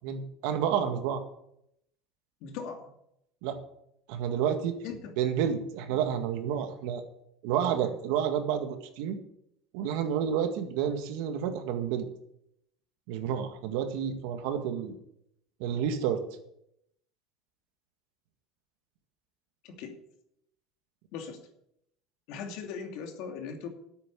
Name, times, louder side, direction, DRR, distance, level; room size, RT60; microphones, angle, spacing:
voice 1, 0.0-1.2 3.4-3.6 4.1-4.8 5.2-7.0 7.4-9.2 9.7-12.1 13.1-14.9 15.6-16.2, right 8 dB, 75° right, 7 dB, 1.9 m, -30 dB
voice 2, 2.4-2.9 4.8-5.0 7.7-7.9 19.6-19.9 21.1-21.4 22.3-23.7, left 6 dB, 65° left, 4 dB, 2.6 m, -39 dB
9.4 x 8.7 x 8.2 m, 0.76 s
cardioid pair, 140°, 0 cm